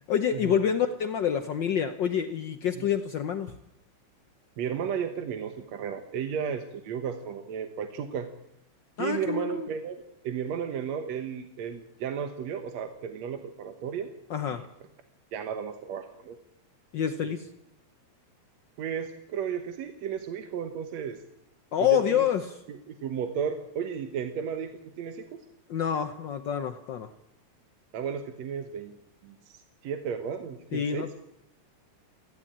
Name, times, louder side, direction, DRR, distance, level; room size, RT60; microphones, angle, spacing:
voice 1, 0.1-3.5 9.0-9.7 14.3-14.6 16.9-17.5 21.7-22.6 25.7-27.1 30.7-31.1, left 8 dB, 75° left, 7 dB, 1.0 m, -27 dB
voice 2, 4.6-8.3 9.0-10.0 10.2-14.1 14.5-14.6 15.3-16.4 17.2-17.3 18.8-21.2 21.9-22.3 22.7-25.4 27.9-29.0 29.2-31.1, right 7 dB, 70° right, 7 dB, 2.3 m, -34 dB
19.5 x 15.5 x 8.7 m, 0.85 s
omnidirectional pair, 3.4 m